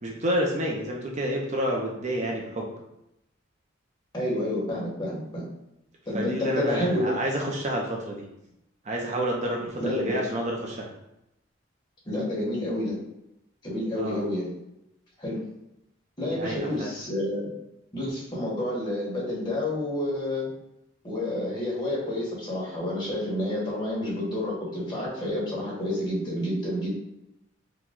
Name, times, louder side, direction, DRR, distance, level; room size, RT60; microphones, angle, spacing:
voice 1, 0.0-2.7 6.1-8.2 8.8-10.9 14.0-14.2 16.3-16.9, equal, 35° right, -1 dB, 0.6 m, -29 dB
voice 2, 4.1-5.5 6.1-7.0 9.8-10.2 12.0-12.9 13.6-14.5 15.2-15.4 16.2-17.5 17.9-20.5 21.0-26.9, left 1 dB, 25° left, -6 dB, 1.5 m, -29 dB
4.7 x 2.2 x 3.7 m, 0.84 s
head